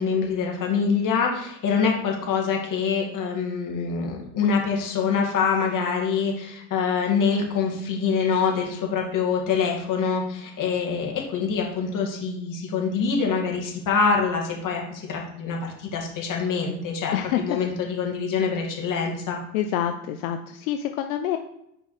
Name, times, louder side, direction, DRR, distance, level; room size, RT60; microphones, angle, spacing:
voice 1, 0.0-19.4, left 5 dB, 50° left, 0 dB, 2.2 m, -25 dB
voice 2, 19.5-21.4, left 10 dB, 85° left, 6 dB, 0.6 m, -26 dB
5.1 x 4.5 x 4.9 m, 0.79 s
supercardioid pair, 85°, 41 cm